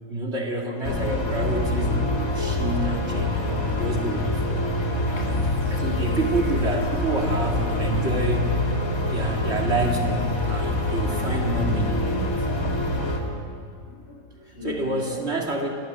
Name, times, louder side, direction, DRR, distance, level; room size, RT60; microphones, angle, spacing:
voice 1, 0.1-4.7 5.1-8.7 9.1-12.3 14.4-15.7, right 2 dB, 50° right, 1 dB, 2.5 m, -28 dB
sound 1, 0.8-13.2, left 2 dB, 80° left, 2.8 m, -25 dB
voice 2, 5.0-5.5 12.6-13.4 13.8-15.2, left 2 dB, 50° left, 0 dB, 5.0 m, -40 dB
27.5 x 19.0 x 7.6 m, 2.5 s
omnidirectional pair, 1.5 m